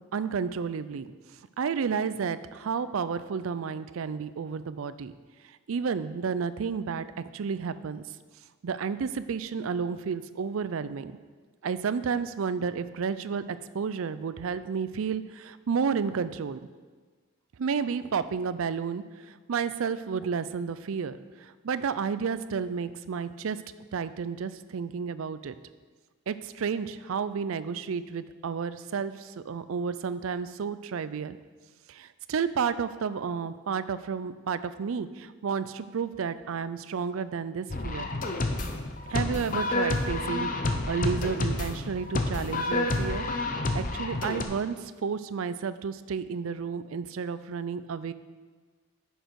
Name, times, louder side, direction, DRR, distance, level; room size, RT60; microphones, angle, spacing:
voice 1, 0.1-1.1 1.6-5.1 5.7-7.1 7.3-8.0 8.6-11.1 11.6-16.6 17.6-23.6 23.9-25.5 26.3-31.4 31.9-38.1 39.1-43.2 43.7-48.1, right 6 dB, 75° right, 14 dB, 0.4 m, -31 dB
sound 1, 37.7-44.4, left 2 dB, 40° left, 0.7 m, -29 dB
10.0 x 6.4 x 4.7 m, 1.4 s
head